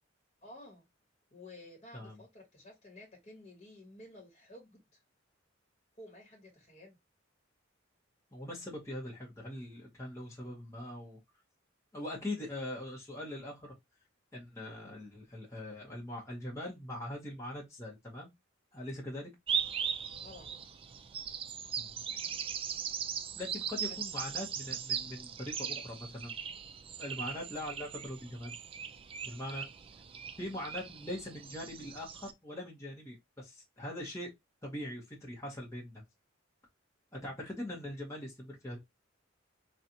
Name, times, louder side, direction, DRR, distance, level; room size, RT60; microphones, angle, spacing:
voice 1, 0.4-0.8 1.3-5.0 6.0-7.0 20.1-20.6 23.9-24.0, left 1 dB, 30° left, 1.3 m, -53 dB
voice 2, 8.3-11.2 11.9-13.7 14.3-18.3 18.7-19.3 21.8-22.0 23.4-26.4 27.0-28.6 29.2-29.7 30.4-34.3 34.6-36.0 37.1-38.8, left 1 dB, 15° left, 1.1 m, -42 dB
sound 1, 19.5-32.3, right 7 dB, 25° right, 0.3 m, -39 dB
4.0 x 2.4 x 2.8 m
head